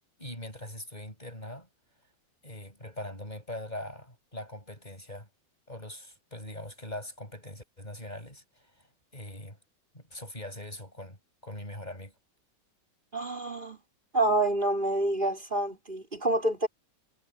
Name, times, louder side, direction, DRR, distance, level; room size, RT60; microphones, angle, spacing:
voice 1, 0.2-1.7 2.4-5.3 5.7-8.9 9.1-9.6 9.9-11.2 11.4-12.1, left 1 dB, 25° left, 7.7 m, -42 dB
voice 2, 13.1-13.8 14.1-16.7, right 1 dB, 25° right, 4.1 m, -27 dB
omnidirectional pair, 1.9 m